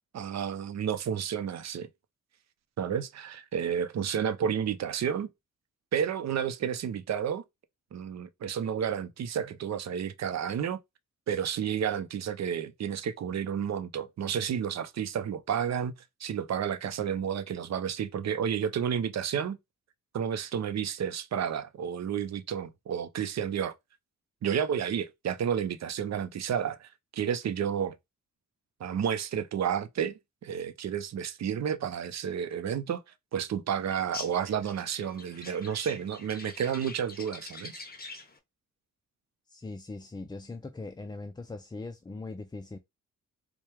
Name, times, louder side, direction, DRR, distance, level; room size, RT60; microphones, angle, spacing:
voice 1, 0.1-1.9 2.8-5.3 5.9-7.4 7.9-10.8 11.3-15.9 16.2-19.6 20.1-23.7 24.4-28.0 28.8-33.0 33.3-37.8, right 8 dB, 55° right, 0.6 m, -31 dB
sound 1, 33.9-38.4, left 3 dB, 30° left, 0.9 m, -45 dB
voice 2, 39.5-42.8, left 3 dB, 15° left, 0.4 m, -40 dB
4.5 x 2.2 x 3.3 m
cardioid pair, 75°, 32 cm